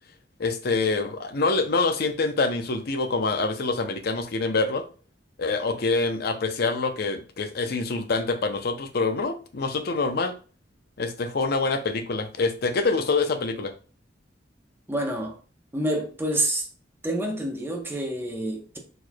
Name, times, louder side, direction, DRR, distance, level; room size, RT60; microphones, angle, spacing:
voice 1, 0.4-4.8 5.4-10.4 11.0-13.7, left 3 dB, 60° left, 0.6 m, -26 dB
voice 2, 14.9-15.3 15.7-16.7 17.0-18.8, right 1 dB, 15° right, 0.8 m, -28 dB
4.7 x 4.3 x 2.2 m
head